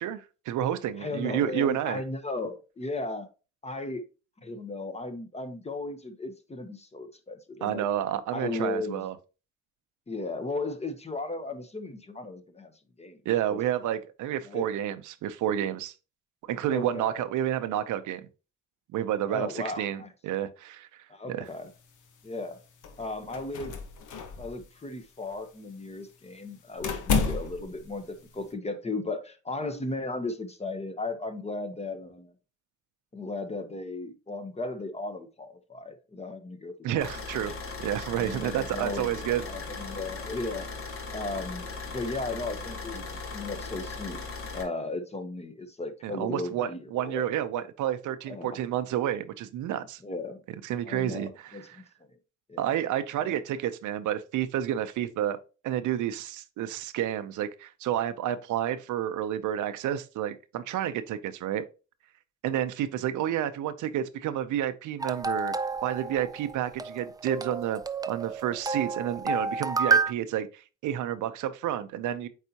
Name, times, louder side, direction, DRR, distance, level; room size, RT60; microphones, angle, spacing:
voice 1, 0.0-2.0 7.6-9.1 13.3-15.9 16.5-18.3 18.9-21.5 36.8-39.4 46.0-50.0 50.6-51.8 52.6-55.4 55.6-61.6 62.4-65.5 65.8-67.8 68.1-72.3, right 11 dB, 80° right, 0.7 m, -30 dB
voice 2, 1.0-3.3 3.6-4.0 4.4-7.9 8.3-9.1 10.1-13.2 13.5-13.6 14.4-14.7 16.6-17.2 19.3-20.1 21.1-21.7 22.2-22.6 23.0-23.8 24.4-32.3 33.1-37.4 38.2-40.7 41.1-41.7 41.9-47.3 48.3-48.6 50.0-50.4 50.8-51.8 52.5-52.8 53.2-53.4, left 2 dB, 20° left, 1.0 m, -36 dB
sound 1, 21.5-28.5, left 4 dB, 80° left, 1.2 m, -34 dB
sound 2, 37.0-44.6, left 4 dB, 45° left, 1.5 m, -38 dB
sound 3, 65.0-70.1, right 4 dB, 15° right, 0.4 m, -30 dB
8.2 x 4.1 x 2.8 m
cardioid pair, 90°, 30 cm